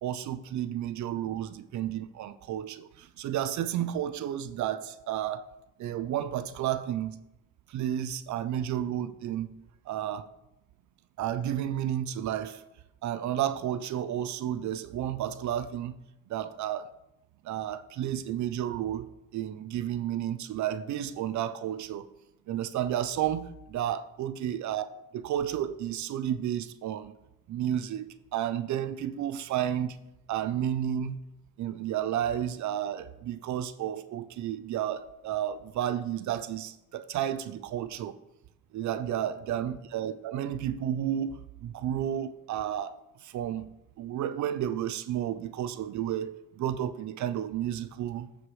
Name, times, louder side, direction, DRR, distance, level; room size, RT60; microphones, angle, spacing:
voice 1, 0.0-5.5 5.8-7.2 7.7-9.5 9.9-10.3 11.2-12.6 13.0-15.9 16.3-16.9 17.4-22.1 22.5-24.9 25.1-27.1 27.5-28.1 28.3-30.0 30.3-31.2 31.6-38.2 38.7-43.7 44.0-48.3, right 10 dB, 70° right, 0.6 m, -32 dB
13.5 x 5.0 x 3.2 m
cardioid pair, 90°, 30 cm